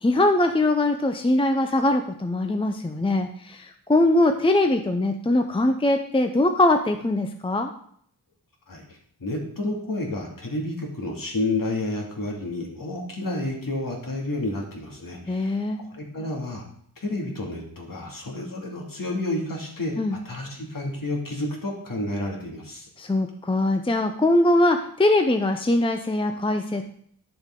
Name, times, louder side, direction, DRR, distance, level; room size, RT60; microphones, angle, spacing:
voice 1, 0.0-7.7 15.3-15.8 20.0-20.2 23.0-26.8, left 2 dB, 15° left, 6 dB, 0.6 m, -22 dB
voice 2, 9.2-16.6 17.0-20.0 20.2-22.9, left 2 dB, 55° left, -1 dB, 2.4 m, -30 dB
11.0 x 7.0 x 3.7 m, 0.64 s
wide cardioid pair, 100°, 39 cm